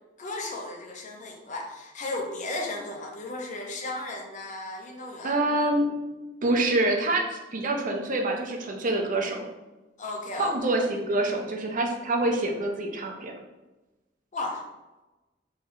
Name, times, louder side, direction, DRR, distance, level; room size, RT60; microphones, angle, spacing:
voice 1, 0.2-5.6 10.0-10.5 14.3-14.6, left 2 dB, 40° left, 1 dB, 0.6 m, -35 dB
voice 2, 5.2-5.9 6.4-9.5 10.4-13.3, right 2 dB, 45° right, 1 dB, 0.5 m, -26 dB
3.7 x 3.1 x 2.6 m, 1.1 s
head